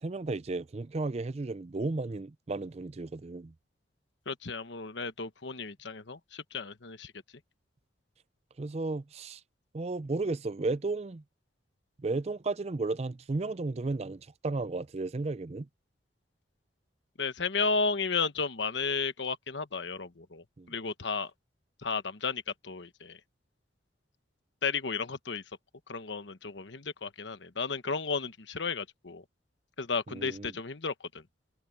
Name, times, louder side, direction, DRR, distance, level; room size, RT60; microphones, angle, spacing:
voice 1, 0.0-3.5 8.6-9.4 9.7-11.2 12.0-15.7 20.6-20.7 30.1-30.5, right 3 dB, 35° right, 0.4 m, -34 dB
voice 2, 4.3-7.1 17.2-21.3 21.8-23.2 24.6-25.4 25.9-29.2 29.8-31.2, left 4 dB, 70° left, 1.2 m, -33 dB
head